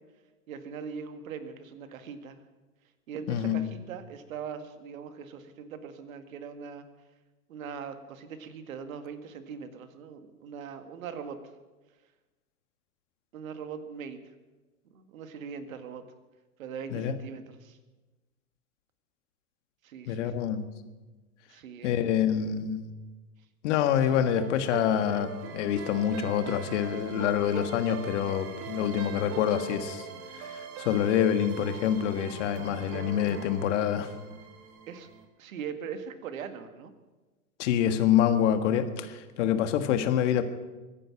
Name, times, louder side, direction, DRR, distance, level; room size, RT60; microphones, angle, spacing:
voice 1, 0.5-2.4 3.1-6.9 7.5-11.4 13.3-14.2 14.9-16.0 16.6-17.8 19.8-20.4 21.5-21.9 34.9-35.1 35.4-36.9, right 6 dB, 60° right, 9 dB, 2.0 m, -41 dB
voice 2, 3.3-3.7 16.9-17.1 20.1-20.6 21.8-22.9 23.6-30.0 30.3-34.1 37.6-40.4, left 9 dB, 50° left, 9 dB, 1.7 m, -26 dB
sound 1, 24.0-35.2, right 6 dB, 30° right, 1.9 m, -41 dB
23.0 x 10.0 x 6.0 m, 1.2 s
hypercardioid pair, 110°, 45 cm